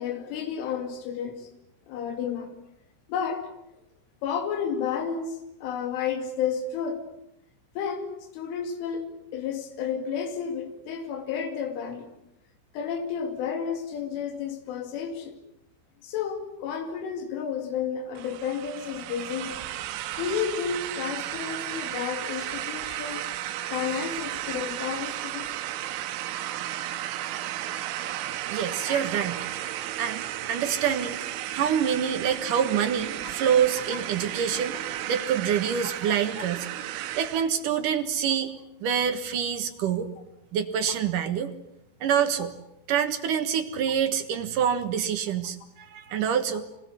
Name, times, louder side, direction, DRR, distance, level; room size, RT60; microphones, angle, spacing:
voice 1, 0.0-1.5 1.9-2.5 3.1-3.5 4.2-7.1 7.8-12.1 12.7-15.4 16.0-19.6 20.2-23.3 23.7-25.6 28.9-29.0 36.1-36.2, left 7 dB, 80° left, 6 dB, 4.8 m, -31 dB
sound 1, 18.2-37.5, right 13 dB, 80° right, 3.6 m, -34 dB
voice 2, 28.5-29.4 30.0-31.2 31.5-34.8 35.1-36.7 37.2-38.5 38.8-40.1 40.5-41.5 42.0-42.5 42.9-46.7, right 8 dB, 65° right, 7 dB, 2.3 m, -26 dB
25.5 x 20.0 x 9.7 m, 0.81 s
omnidirectional pair, 5.6 m